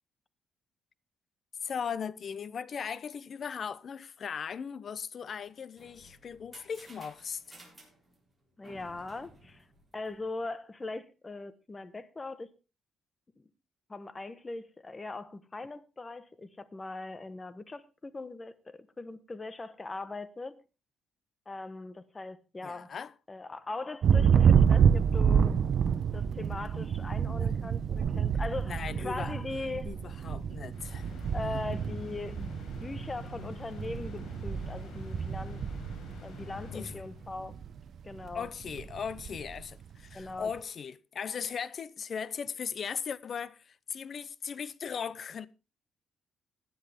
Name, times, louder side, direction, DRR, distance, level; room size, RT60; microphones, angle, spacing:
voice 1, 1.6-7.4 22.6-23.1 27.2-27.5 28.6-29.3 29.8-31.1 36.7-37.0 38.3-45.5, left 6 dB, 50° left, 0.7 m, -38 dB
sound 1, 5.4-10.5, right 1 dB, 10° right, 7.1 m, -56 dB
voice 2, 8.6-9.7 9.9-12.5 13.9-20.6 21.4-22.9 23.3-25.6 26.1-29.9 31.3-32.5 32.8-35.6 36.2-37.6 38.0-38.5 40.1-40.5, left 3 dB, 25° left, 1.2 m, -40 dB
Thunder, 24.0-36.9 37.2-37.8 38.1-39.6, right 7 dB, 60° right, 0.7 m, -28 dB
sound 2, 30.7-37.4, left 5 dB, 75° left, 5.3 m, -46 dB
16.5 x 10.5 x 3.6 m
cardioid pair, 90°, 0 cm